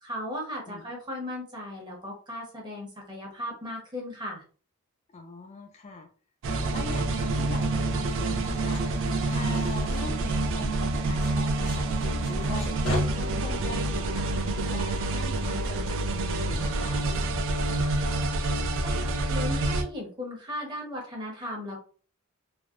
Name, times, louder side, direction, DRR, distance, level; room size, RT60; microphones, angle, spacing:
voice 1, 0.0-4.4 18.8-21.8, left 1 dB, 20° right, -2 dB, 1.0 m, -36 dB
voice 2, 5.1-6.1 6.7-17.1, left 3 dB, 30° left, 4 dB, 0.3 m, -42 dB
sound 1, 6.4-19.8, right 2 dB, 60° right, 0.4 m, -27 dB
sound 2, 7.7-10.9 11.1-13.0, left 1 dB, 90° left, 1.1 m, -39 dB
Wind instrument woodwind instrument, 12.5-20.0, left 2 dB, 45° left, 0.7 m, -50 dB
3.3 x 2.2 x 2.4 m, 0.40 s
head